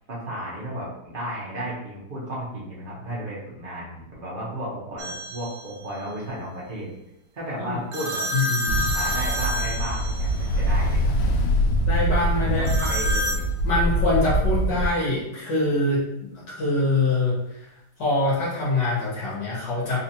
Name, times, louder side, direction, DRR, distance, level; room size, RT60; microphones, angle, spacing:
voice 1, 0.1-6.9 7.3-8.2 8.9-11.2 12.4-13.5, right 1 dB, 40° right, -6 dB, 0.7 m, -34 dB
sound 1, 5.0-5.7 7.9-10.6 12.7-13.5, equal, 90° right, 0.8 m, -29 dB
voice 2, 8.3-8.8 11.8-12.7 13.6-17.6 18.0-20.0, left 2 dB, 60° left, -8 dB, 1.7 m, -24 dB
Ocean, 8.7-14.9, equal, 85° left, 1.4 m, -23 dB
3.9 x 2.5 x 2.8 m, 0.82 s
omnidirectional pair, 2.2 m